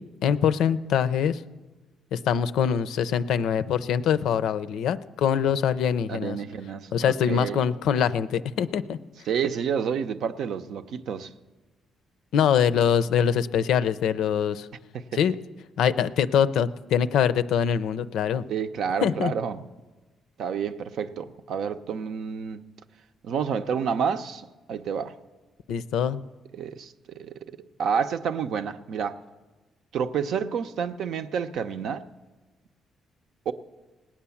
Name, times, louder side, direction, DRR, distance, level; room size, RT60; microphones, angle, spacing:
voice 1, 0.2-1.4 2.1-6.4 6.9-9.0 12.3-14.7 15.1-15.3 15.8-18.4 19.0-19.3 25.7-26.2, left 8 dB, 80° left, 0.5 m, -23 dB
voice 2, 6.1-7.6 9.3-11.3 14.9-15.0 18.5-19.6 20.4-22.6 23.2-25.1 26.5-27.3 27.8-29.2 29.9-32.0 33.5-33.6, right 7 dB, 75° right, 0.7 m, -29 dB
18.5 x 8.8 x 7.1 m
cardioid pair, 90°, 0 cm